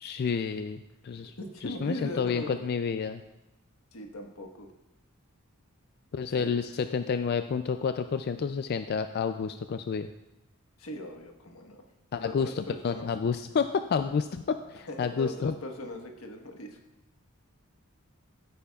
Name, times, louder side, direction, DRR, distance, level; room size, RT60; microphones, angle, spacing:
voice 1, 0.0-1.3 1.6-3.2 6.1-10.1 12.1-15.6, left 6 dB, 50° left, 9 dB, 0.3 m, -30 dB
voice 2, 1.4-2.6 3.9-4.7 6.3-6.6 10.8-11.8 12.1-13.1 14.9-16.8, left 1 dB, 85° left, 3 dB, 1.4 m, -39 dB
15.0 x 8.6 x 2.4 m, 0.92 s
head